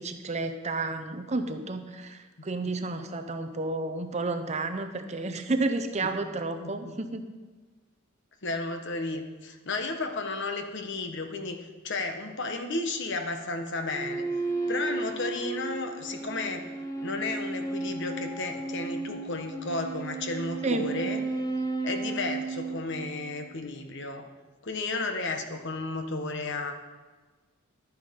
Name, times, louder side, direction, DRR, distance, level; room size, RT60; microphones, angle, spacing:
voice 1, 0.0-7.2 20.6-20.9, right 2 dB, 30° right, 7 dB, 0.7 m, -31 dB
voice 2, 6.0-6.9 8.4-14.2 14.7-16.7 17.0-21.2 21.8-24.3 24.6-26.7, left 3 dB, 55° left, 6 dB, 1.1 m, -33 dB
sound 1, 13.9-23.5, right 3 dB, 15° left, 1.1 m, -34 dB
11.5 x 9.5 x 5.2 m, 1.3 s
head